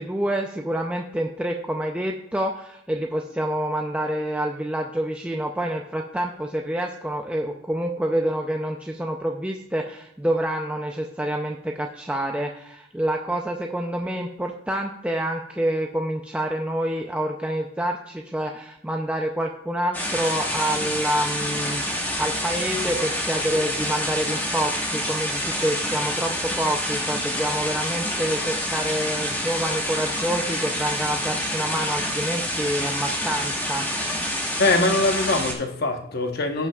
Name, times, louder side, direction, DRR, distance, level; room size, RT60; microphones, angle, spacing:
voice 1, 0.0-33.8, right 1 dB, 5° right, 0.4 m, -27 dB
sound 1, 19.9-35.5, equal, 10° left, 1.3 m, -27 dB
voice 2, 34.6-36.7, left 2 dB, 50° left, 1.0 m, -22 dB
16.0 x 5.9 x 2.3 m
head